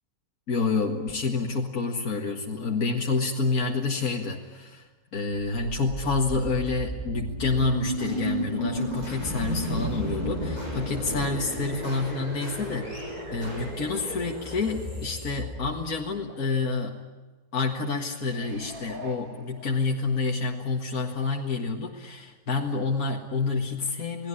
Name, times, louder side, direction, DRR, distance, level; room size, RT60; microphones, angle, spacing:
voice 1, 0.5-17.0 17.5-24.3, left 4 dB, 70° left, 0 dB, 2.3 m, -28 dB
sound 1, 5.8-16.3, equal, 25° right, 7.4 m, -33 dB
sound 2, 18.2-20.3 20.8-20.9, left 1 dB, 65° right, 3.1 m, -44 dB
29.0 x 19.0 x 9.9 m, 1.3 s
omnidirectional pair, 1.6 m